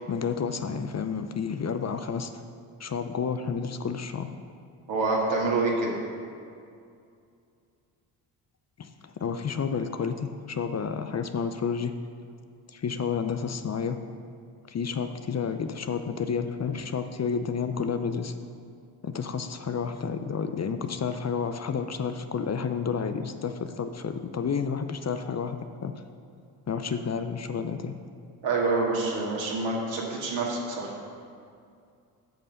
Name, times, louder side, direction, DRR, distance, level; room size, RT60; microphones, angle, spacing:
voice 1, 0.1-2.4 2.8-4.3 8.8-11.9 12.7-14.0 14.7-18.3 19.0-25.6 25.8-25.9 26.7-27.9, left 6 dB, 35° left, 8 dB, 0.6 m, -30 dB
voice 2, 4.9-6.0 28.4-30.9, right 3 dB, 65° right, -3 dB, 2.2 m, -27 dB
8.8 x 5.5 x 6.5 m, 2.3 s
hypercardioid pair, 50°, 48 cm